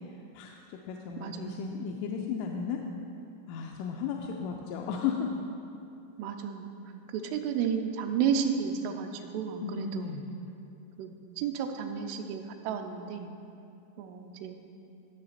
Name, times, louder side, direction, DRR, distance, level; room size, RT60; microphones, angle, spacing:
voice 1, 0.3-2.8 3.5-5.4 9.6-10.3, left 6 dB, 85° left, 1 dB, 3.1 m, -34 dB
voice 2, 1.2-1.6 6.2-6.7 7.1-10.3 11.0-13.3 14.0-14.6, right 7 dB, 90° right, 5 dB, 3.2 m, -32 dB
18.5 x 6.6 x 4.1 m, 2.6 s
omnidirectional pair, 5.5 m